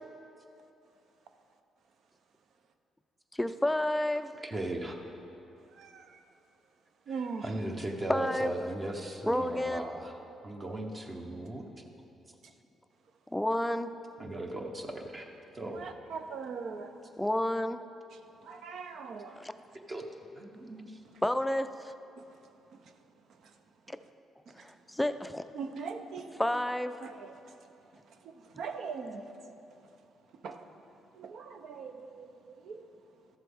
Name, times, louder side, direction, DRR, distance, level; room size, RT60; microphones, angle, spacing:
voice 1, 3.4-4.3 8.1-8.5 9.2-9.8 13.3-13.9 17.2-17.8 19.4-19.5 21.2-21.9 23.9-24.0 24.6-25.4 26.4-27.0, left 1 dB, 5° left, 10 dB, 0.4 m, -30 dB
voice 2, 4.4-4.9 7.4-10.1 10.4-11.6 14.2-15.3 15.5-15.9 19.9-20.0 20.3-21.0, right 1 dB, 30° right, 2 dB, 0.9 m, -37 dB
voice 3, 5.8-6.2 7.1-7.5 15.7-16.9 18.1-19.4 21.0-21.1 22.2-22.3 24.5-24.7 25.5-26.6 27.0-27.6 28.2-29.3 30.4-30.7 31.1-32.8, right 5 dB, 70° right, 7 dB, 0.7 m, -41 dB
13.0 x 7.4 x 3.6 m, 2.8 s
cardioid pair, 90°, 0 cm